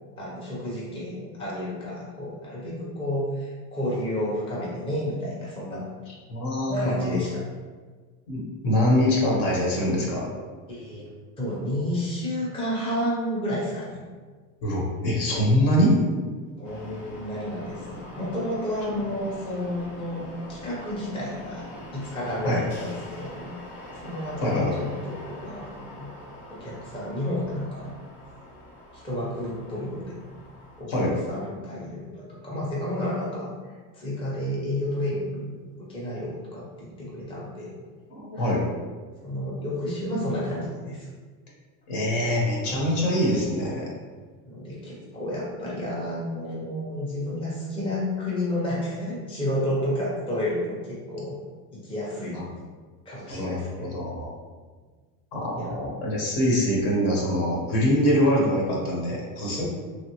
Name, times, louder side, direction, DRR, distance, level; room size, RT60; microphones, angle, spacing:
voice 1, 0.2-5.9 6.6-7.4 10.7-11.1 11.4-14.0 16.6-20.2 20.5-23.5 23.9-26.1 26.5-27.9 28.9-30.2 30.8-37.7 38.3-38.5 39.2-41.1 44.5-51.3 51.7-52.4 53.1-54.0 55.6-55.8 59.6-59.7, left 1 dB, 15° left, -6 dB, 0.6 m, -31 dB
voice 2, 6.3-7.1 8.3-10.3 14.6-16.0 22.4-22.6 24.4-24.8 30.9-31.1 38.1-38.6 41.9-43.9 52.3-52.4 53.3-53.6 53.9-54.3 55.3-59.6, equal, 65° left, -3 dB, 1.1 m, -24 dB
sound 1, 16.6-30.8, left 1 dB, 45° left, 0.8 m, -43 dB
3.0 x 2.4 x 2.9 m, 1.5 s
supercardioid pair, 125°, 43 cm